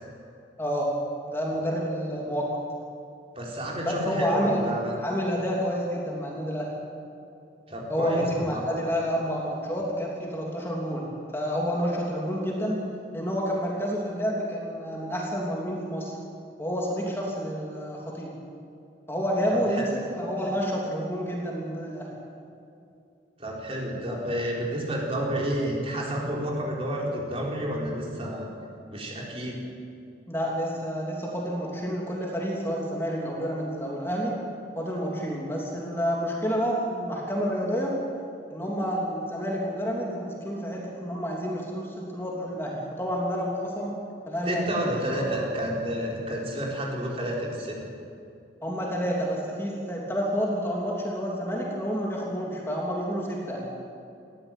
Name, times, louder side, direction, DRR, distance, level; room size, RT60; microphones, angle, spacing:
voice 1, 0.6-1.0 1.3-2.6 3.8-4.6 5.0-6.7 7.9-11.1 11.3-12.8 13.1-16.1 16.6-18.3 19.1-22.1 24.1-24.2 30.3-34.4 34.7-38.0 38.5-43.9 44.3-45.2 48.6-53.7, equal, 15° left, -2 dB, 3.2 m, -29 dB
voice 2, 3.3-5.0 7.7-8.6 19.5-19.6 23.4-28.5 28.9-29.6 44.5-47.8, equal, 30° right, -2 dB, 4.3 m, -30 dB
20.5 x 15.5 x 9.1 m, 2.5 s
head